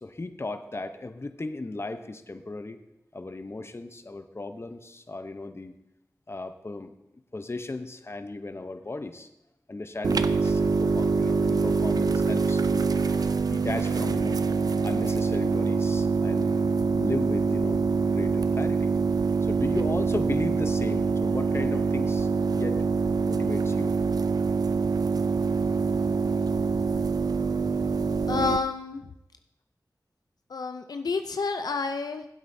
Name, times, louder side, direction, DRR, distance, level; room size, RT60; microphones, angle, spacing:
voice 1, 0.0-2.8 3.1-5.7 6.3-6.9 7.3-9.3 9.7-12.9 13.4-14.4 14.8-16.5 17.0-19.0 19.4-22.8 23.2-23.9, left 2 dB, 40° left, 9 dB, 0.8 m, -36 dB
sound 1, 10.0-28.6, right 4 dB, 70° right, 0.4 m, -25 dB
voice 2, 28.3-29.1 30.5-32.3, left 4 dB, 80° left, 7 dB, 0.5 m, -29 dB
15.5 x 8.2 x 2.7 m, 0.88 s
cardioid pair, 40°, 7 cm